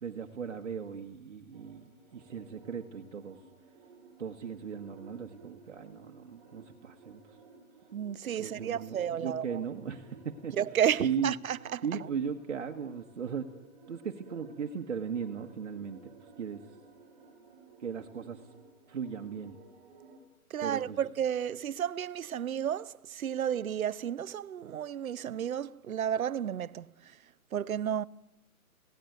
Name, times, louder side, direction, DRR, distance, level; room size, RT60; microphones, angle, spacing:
voice 1, 0.0-3.4 4.2-7.4 8.4-10.6 11.0-11.3 11.8-13.6 13.9-16.1 16.4-16.6 17.8-18.4 18.9-19.6 20.6-21.0, right 7 dB, 55° right, 1.5 m, -37 dB
sound 1, 1.5-20.2, right 4 dB, 15° right, 2.9 m, -56 dB
voice 2, 7.9-9.6 10.6-11.8 20.5-26.9 27.5-28.0, right 9 dB, 70° right, 0.8 m, -32 dB
26.5 x 17.5 x 8.0 m
hypercardioid pair, 170°, 43 cm